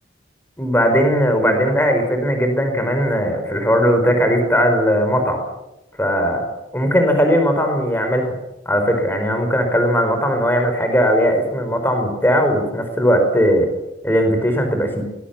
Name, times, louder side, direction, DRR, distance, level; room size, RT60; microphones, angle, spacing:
voice 1, 0.6-5.4 6.0-6.5 6.7-8.3 8.6-13.7 14.0-15.0, equal, 10° left, 5 dB, 5.0 m, -18 dB
23.0 x 20.5 x 7.2 m, 0.94 s
head